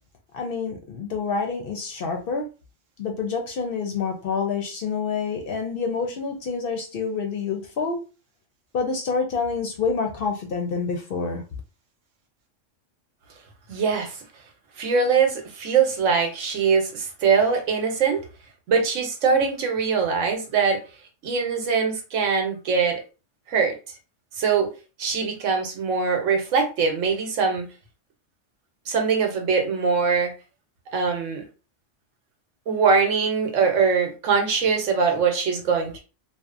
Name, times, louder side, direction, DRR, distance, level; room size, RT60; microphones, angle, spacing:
voice 1, 0.3-2.5 3.0-8.0 8.7-11.4, left 5 dB, 60° left, 0.6 m, -27 dB
voice 2, 13.7-14.2 14.8-18.2 18.7-20.8 21.2-23.0 23.5-23.7 24.4-24.7 25.0-27.7 28.9-30.3 30.9-31.4 32.7-36.0, right 5 dB, 85° right, 1.1 m, -22 dB
2.7 x 2.1 x 2.4 m
omnidirectional pair, 1.3 m